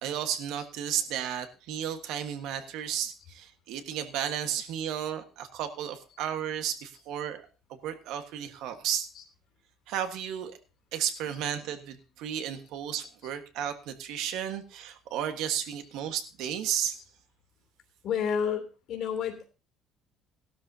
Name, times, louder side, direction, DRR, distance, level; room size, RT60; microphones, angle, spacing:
voice 1, 0.0-7.4 7.8-9.1 9.9-10.6 10.9-17.0, right 9 dB, 80° right, 8 dB, 1.5 m, -33 dB
voice 2, 18.0-19.5, left 7 dB, 65° left, 3 dB, 3.0 m, -30 dB
17.0 x 12.5 x 2.8 m, 0.33 s
cardioid pair, 115°, 0 cm